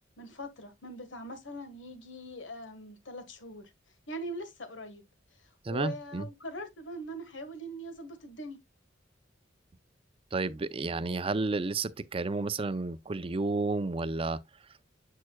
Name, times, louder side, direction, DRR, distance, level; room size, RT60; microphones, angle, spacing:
voice 1, 0.2-3.7 4.1-5.0 5.4-8.6, equal, 90° left, 1.5 m, -42 dB
voice 2, 5.6-6.3 10.3-14.4, right 3 dB, 30° right, 0.5 m, -31 dB
7.4 x 6.4 x 2.2 m
head